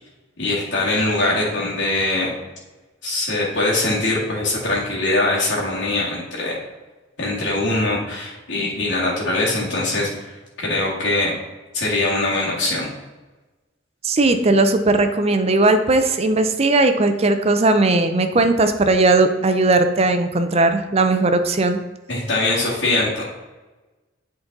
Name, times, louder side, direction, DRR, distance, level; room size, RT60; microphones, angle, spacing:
voice 1, 0.4-2.3 3.0-6.6 7.2-10.1 10.6-11.3 11.7-12.9 22.1-23.2, left 2 dB, 65° left, -6 dB, 1.9 m, -22 dB
voice 2, 14.0-21.8, right 2 dB, 30° right, 8 dB, 0.5 m, -17 dB
8.3 x 4.0 x 3.9 m, 1.2 s
head